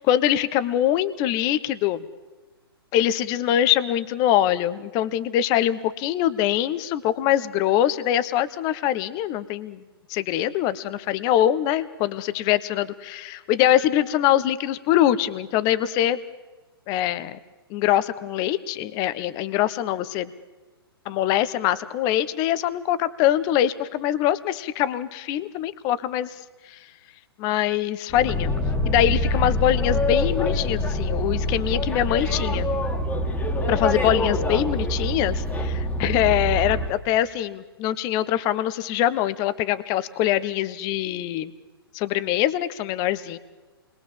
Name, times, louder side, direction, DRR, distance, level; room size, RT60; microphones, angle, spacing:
voice 1, 0.0-2.0 2.9-9.8 10.1-16.2 16.9-17.4 17.7-20.3 21.0-26.3 26.7-26.8 27.4-28.5 28.8-32.7 33.7-41.5 41.9-43.4, left 12 dB, 30° left, 15 dB, 1.1 m, -23 dB
Boat Water vehicle, 28.1-36.9, left 1 dB, 10° left, 2.1 m, -25 dB
28.5 x 22.0 x 7.5 m, 1.3 s
figure-of-eight pair, 125°, 13 cm